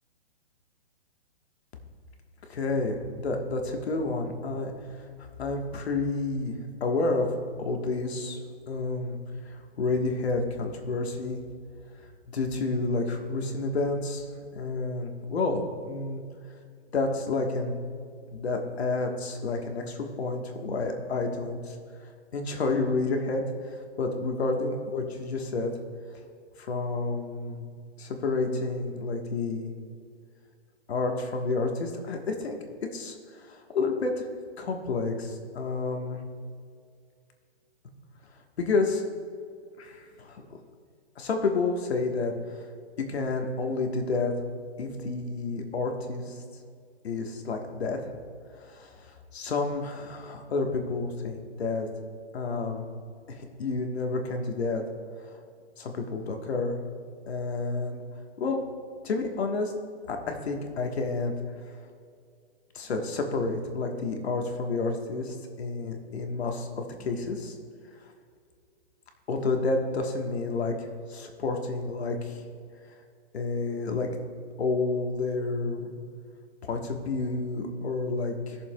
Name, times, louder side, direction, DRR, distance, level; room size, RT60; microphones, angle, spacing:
voice 1, 2.5-4.7 5.4-7.3 7.6-8.4 8.7-9.2 9.4-11.4 12.3-14.3 14.5-16.2 16.9-17.8 18.3-21.8 22.3-23.4 23.7-25.7 26.6-27.7 28.0-29.7 30.9-32.6 32.9-33.1 33.5-34.2 34.6-36.2 38.6-39.0 39.8-40.4 41.2-42.6 43.1-44.3 44.8-46.4 47.0-48.0 48.6-49.1 49.3-51.9 52.3-52.8 53.3-54.8 55.8-56.8 57.3-58.0 58.4-58.6 59.0-59.7 60.1-61.3 62.7-67.6 69.3-72.4 73.3-74.1 74.6-75.9 76.6-78.6, left 3 dB, 65° left, 3 dB, 1.4 m, -30 dB
19.5 x 6.8 x 2.3 m, 2.2 s
hypercardioid pair, 165°, 34 cm